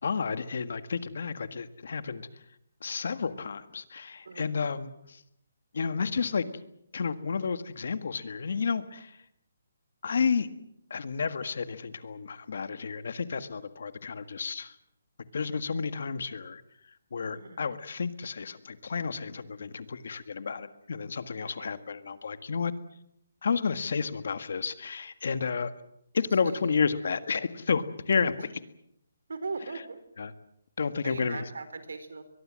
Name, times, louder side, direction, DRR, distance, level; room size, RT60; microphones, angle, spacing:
voice 1, 0.0-2.3 2.8-5.2 5.7-6.4 6.9-9.1 10.0-10.5 10.9-14.7 15.3-16.6 17.1-22.7 23.4-25.7 26.1-28.3 30.2-30.3 30.8-31.4, left 5 dB, 55° left, 12 dB, 1.7 m, -31 dB
voice 2, 21.3-21.7 26.6-26.7 29.3-30.0 31.0-32.2, right 4 dB, 85° right, 12 dB, 4.2 m, -39 dB
23.0 x 21.5 x 7.7 m, 0.76 s
hypercardioid pair, 175°, 0 cm